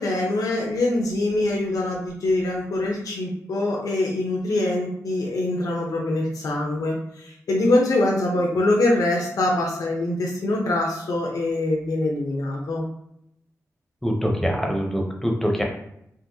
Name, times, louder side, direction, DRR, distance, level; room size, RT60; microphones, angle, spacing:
voice 1, 0.0-12.8, left 2 dB, 85° left, -2 dB, 0.7 m, -24 dB
voice 2, 14.0-15.6, equal, 5° left, 0 dB, 0.7 m, -24 dB
3.8 x 2.5 x 2.7 m, 0.77 s
wide cardioid pair, 110°, 6 cm